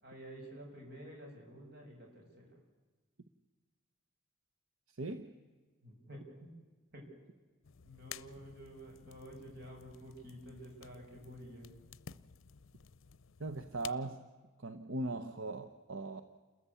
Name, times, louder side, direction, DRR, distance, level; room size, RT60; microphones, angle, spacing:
voice 1, 0.0-2.6 5.8-6.5 6.9-7.0 7.8-11.7, equal, 50° right, 0 dB, 6.8 m, -51 dB
voice 2, 4.9-5.3 13.4-14.3 14.6-16.2, right 2 dB, 80° right, 8 dB, 1.0 m, -39 dB
sound 1, 7.6-13.9, left 8 dB, 80° left, 0.6 m, -53 dB
29.0 x 14.0 x 8.6 m, 1.3 s
head